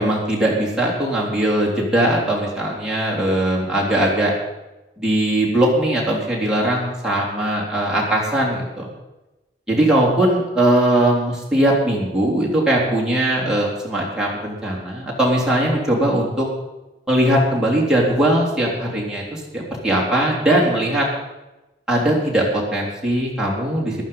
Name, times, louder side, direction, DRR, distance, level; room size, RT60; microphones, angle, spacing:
voice 1, 0.0-4.3 5.0-8.9 9.7-16.5 17.1-21.1 21.9-24.0, right 1 dB, 5° right, -5 dB, 3.6 m, -20 dB
15.0 x 12.0 x 5.6 m, 1.0 s
head